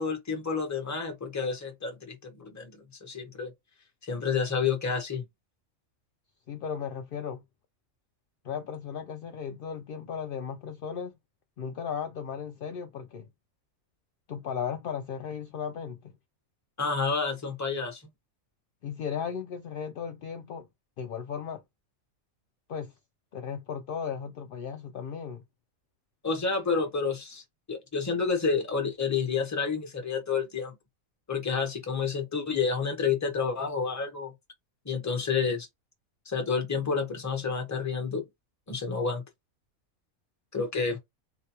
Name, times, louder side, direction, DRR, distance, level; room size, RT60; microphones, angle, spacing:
voice 1, 0.0-3.5 4.0-5.2 16.8-18.0 26.2-27.4 27.7-30.7 31.3-34.3 34.8-35.7 36.3-38.2 38.7-39.2 40.5-41.0, left 5 dB, 15° left, 0.7 m, -29 dB
voice 2, 6.5-7.4 8.4-11.1 11.6-13.3 14.3-16.2 18.8-20.7 21.0-21.6 22.7-22.9 23.3-25.4, left 7 dB, 75° left, 0.5 m, -36 dB
3.9 x 2.1 x 2.9 m
omnidirectional pair, 1.5 m